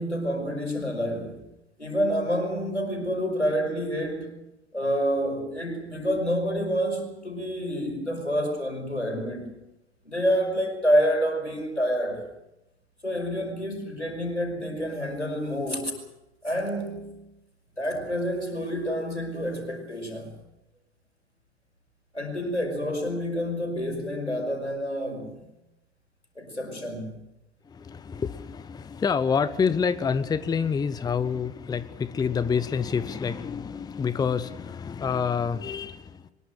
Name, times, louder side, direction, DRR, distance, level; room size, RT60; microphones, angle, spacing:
voice 1, 0.0-1.4 1.8-4.3 4.7-9.5 10.1-12.3 13.0-15.9 16.4-17.2 17.8-20.3 22.1-25.5 26.4-27.2, equal, 90° left, 5.5 m, -28 dB
voice 2, 27.6-36.3, left 6 dB, 10° left, 0.9 m, -27 dB
23.5 x 21.5 x 6.6 m
figure-of-eight pair, 85°, 34 cm